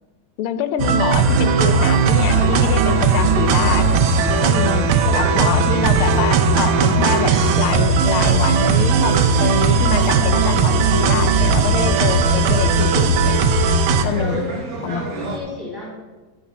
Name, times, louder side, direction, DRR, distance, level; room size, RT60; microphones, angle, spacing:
voice 1, 0.4-4.0 4.4-13.4 14.0-14.5 14.8-15.4, left 9 dB, 80° left, 12 dB, 1.5 m, -25 dB
sound 1, 0.8-14.0, right 4 dB, 75° right, 1.6 m, -17 dB
sound 2, 1.2-15.4, right 2 dB, 45° right, 1.5 m, -30 dB
sound 3, 2.0-12.7, left 6 dB, 65° left, 2.0 m, -35 dB
voice 2, 14.0-14.5 14.8-15.9, left 2 dB, 10° right, -4 dB, 2.4 m, -32 dB
10.0 x 5.1 x 7.0 m, 1.2 s
omnidirectional pair, 2.3 m